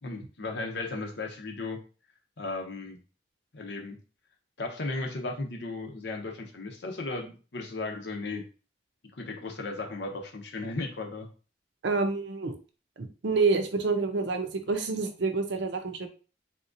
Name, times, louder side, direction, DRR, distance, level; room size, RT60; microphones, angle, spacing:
voice 1, 0.0-1.8 2.4-3.0 3.5-4.0 4.6-8.4 9.1-11.3, left 3 dB, 65° left, 3 dB, 0.7 m, -35 dB
voice 2, 11.8-12.5 13.0-16.1, right 4 dB, 70° right, 6 dB, 0.6 m, -28 dB
3.7 x 2.8 x 2.5 m, 0.36 s
head